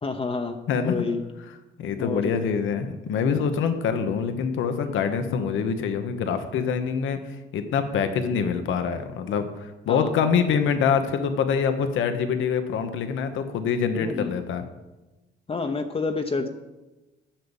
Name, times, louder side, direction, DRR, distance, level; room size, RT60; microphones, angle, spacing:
voice 1, 0.0-0.6 0.8-1.3 2.0-2.5 9.9-10.3 14.0-14.3 15.5-16.5, left 4 dB, 30° left, 5 dB, 0.9 m, -29 dB
voice 2, 1.8-7.2 7.5-14.6, left 6 dB, 80° left, 8 dB, 1.1 m, -25 dB
10.5 x 6.7 x 7.2 m, 1.1 s
cardioid pair, 90°, 20 cm